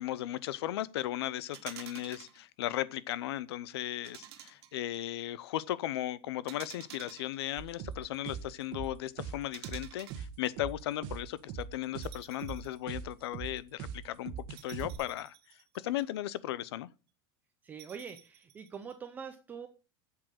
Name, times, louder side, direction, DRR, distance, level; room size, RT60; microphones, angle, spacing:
voice 1, 0.0-14.3 14.6-15.3 15.7-16.9, left 14 dB, 75° left, 0.7 m, -36 dB
sound 1, 1.5-2.4 4.0-5.0 6.5-7.9 9.5-10.2 12.0-12.8 13.2-13.3 14.6-16.2 17.8-18.9, right 11 dB, 75° right, 1.7 m, -50 dB
sound 2, 7.6-14.9, right 7 dB, 35° right, 1.5 m, -41 dB
voice 2, 17.6-19.7, right 6 dB, 15° right, 0.6 m, -44 dB
7.5 x 7.5 x 6.4 m
supercardioid pair, 175°, 13 cm